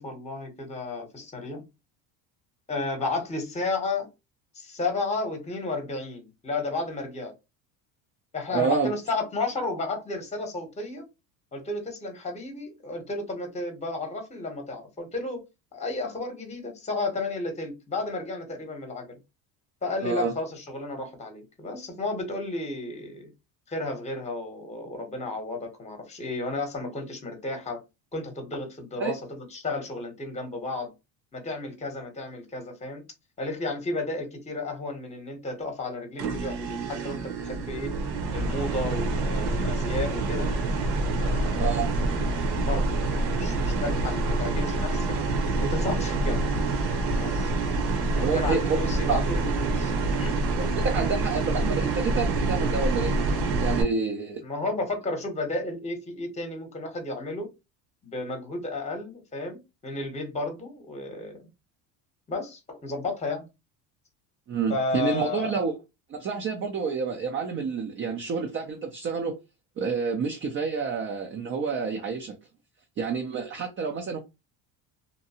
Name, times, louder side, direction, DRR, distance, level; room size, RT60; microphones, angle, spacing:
voice 1, 0.0-1.6 2.7-4.1 4.5-7.3 8.3-11.1 11.5-15.4 15.7-19.2 19.8-23.3 23.7-27.8 28.1-30.9 31.3-33.0 33.4-37.9 38.3-40.5 41.1-41.7 42.4-46.5 47.1-47.5 48.2-50.4 54.4-57.5 58.0-61.4 62.3-63.5 64.7-65.5, left 2 dB, 15° left, 0.9 m, -33 dB
voice 2, 8.5-8.9 20.0-20.3 29.0-29.1 41.6-41.9 48.2-48.8 49.1-49.2 50.6-53.2 53.6-54.4 64.5-65.7 66.1-69.4 69.8-72.4 73.0-74.2, right 5 dB, 30° right, 0.5 m, -28 dB
AC start up fan w comp, 36.2-53.8, right 2 dB, 65° right, 1.0 m, -26 dB
2.7 x 2.2 x 2.7 m
supercardioid pair, 115°, 43 cm